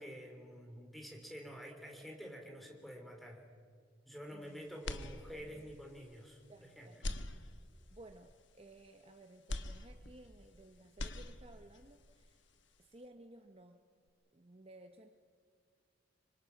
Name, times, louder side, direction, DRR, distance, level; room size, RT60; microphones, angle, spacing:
voice 1, 0.0-3.5 4.0-6.4 6.7-6.9, equal, ahead, 2 dB, 3.2 m, -49 dB
voice 2, 4.3-4.6 5.3-5.8 6.5-7.2 7.9-12.4 12.8-13.8 14.3-15.1, right 2 dB, 30° right, 6 dB, 0.9 m, -57 dB
sound 1, 4.8-5.7 6.2-6.3 6.9-8.0 9.5-10.6 10.8-11.8, left 2 dB, 65° left, 1.2 m, -43 dB
26.0 x 24.5 x 5.9 m, 2.1 s
head